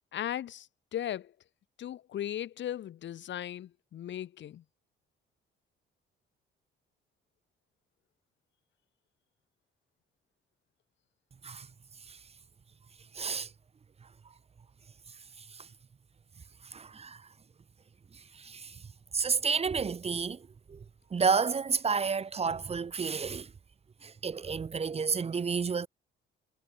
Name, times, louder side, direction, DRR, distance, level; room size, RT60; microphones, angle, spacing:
voice 1, 0.1-1.3 1.8-4.6, left 11 dB, 65° left, 1.7 m, -37 dB
voice 2, 13.1-13.5 16.7-17.2 18.4-18.7 19.1-20.4 20.7-20.8 21.1-23.5 24.0-25.9, right 5 dB, 30° right, 0.8 m, -30 dB
cardioid pair, 90°, 20 cm